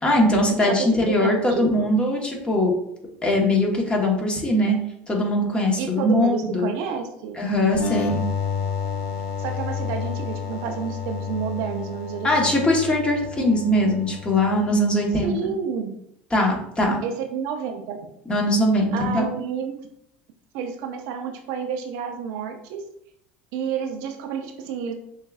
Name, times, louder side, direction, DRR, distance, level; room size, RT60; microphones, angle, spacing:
voice 1, 0.0-2.7 3.2-4.8 5.1-6.7 7.4-8.2 12.2-15.3 16.3-17.0 18.3-19.3, left 1 dB, 20° left, 0 dB, 1.2 m, -21 dB
voice 2, 1.2-1.9 5.8-7.4 9.4-12.6 15.2-15.9 17.0-18.0 18.9-19.8 20.5-22.8 23.5-24.9, right 7 dB, 65° right, 4 dB, 0.6 m, -30 dB
sound 1, 7.7-15.2, left 6 dB, 55° left, 0.7 m, -31 dB
6.2 x 2.5 x 2.4 m, 0.73 s
hypercardioid pair, 90°, 6 cm